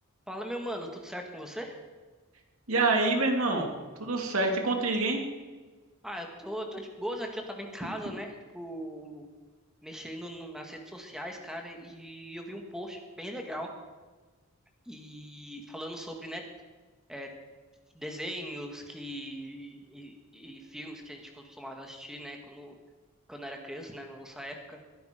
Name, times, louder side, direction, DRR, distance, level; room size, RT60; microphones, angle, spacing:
voice 1, 0.3-1.7 6.0-9.3 9.8-13.7 14.9-16.4 17.1-17.3 17.9-22.7 23.3-24.8, equal, 5° right, 3 dB, 1.9 m, -40 dB
voice 2, 2.7-3.7 4.0-5.2, right 3 dB, 75° right, 2 dB, 2.7 m, -26 dB
21.5 x 11.5 x 5.2 m, 1.3 s
head